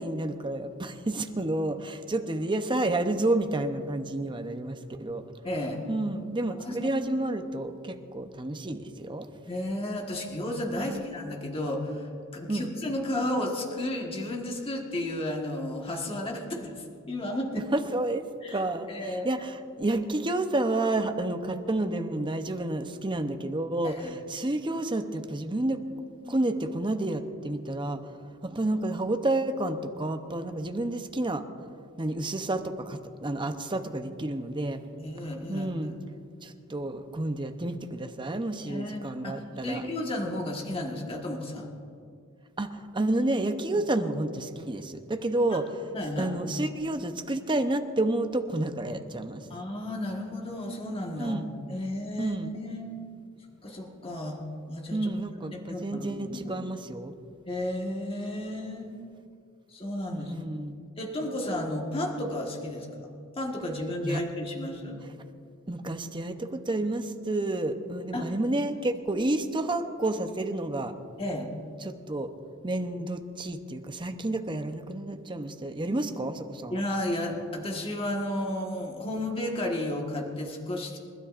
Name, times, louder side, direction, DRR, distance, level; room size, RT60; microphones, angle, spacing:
voice 1, 0.0-5.2 5.9-9.3 10.8-11.1 12.5-12.7 17.7-18.2 18.5-18.9 19.2-25.8 26.3-28.0 28.4-31.4 32.0-34.8 35.5-36.0 36.4-39.9 42.6-45.7 46.2-49.4 51.2-51.5 52.2-52.5 54.9-57.1 60.1-60.7 64.0-64.2 65.7-70.9 71.8-72.3 72.6-76.8, right 2 dB, 20° right, 7 dB, 0.7 m, -30 dB
voice 2, 5.4-5.8 6.6-6.9 9.5-17.6 18.4-19.3 23.8-24.1 26.2-26.4 35.0-35.9 38.7-41.7 45.9-46.3 49.5-51.4 51.7-52.9 53.6-54.4 54.7-55.0 55.5-56.6 57.5-58.9 59.7-60.3 61.0-63.1 63.3-65.0 68.1-68.3 71.2-71.5 76.7-81.0, left 1 dB, 25° left, 0 dB, 1.5 m, -33 dB
28.0 x 13.0 x 2.5 m, 2.5 s
head